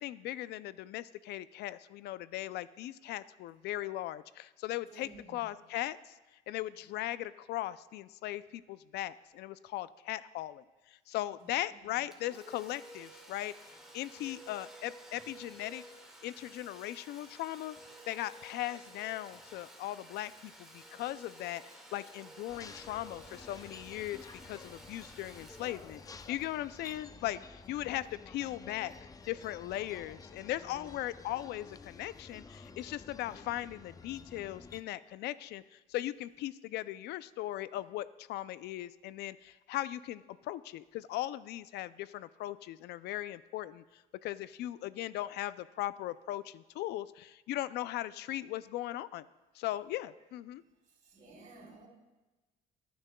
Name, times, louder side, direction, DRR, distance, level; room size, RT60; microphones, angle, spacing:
voice 1, 0.0-6.2 6.5-13.5 13.9-15.8 16.2-17.8 18.1-21.6 21.9-28.9 29.3-49.3 49.5-50.6, left 14 dB, 75° left, 16 dB, 0.4 m, -38 dB
voice 2, 4.9-5.5 11.7-11.9 29.8-29.9 50.9-51.9, right 2 dB, 45° right, -5 dB, 3.9 m, -54 dB
Domestic sounds home sounds, 12.1-27.6, right 1 dB, 5° right, 1.9 m, -53 dB
sound 1, 22.5-34.8, left 4 dB, 20° left, 0.5 m, -51 dB
18.5 x 10.0 x 2.3 m, 1.1 s
cardioid pair, 110°, 17 cm